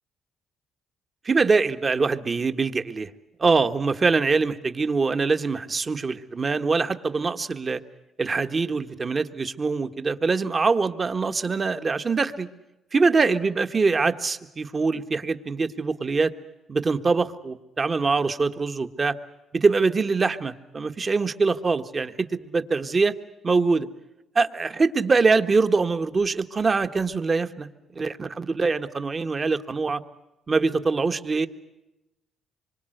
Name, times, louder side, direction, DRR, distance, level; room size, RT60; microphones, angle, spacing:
voice 1, 1.2-3.1 3.4-7.8 8.2-12.5 12.9-16.3 16.7-19.1 19.5-23.1 23.4-23.9 24.3-27.7 27.9-30.0 30.5-31.5, right 4 dB, 35° right, 9 dB, 1.5 m, -23 dB
26.0 x 24.0 x 7.9 m, 0.94 s
cardioid pair, 90°, 0 cm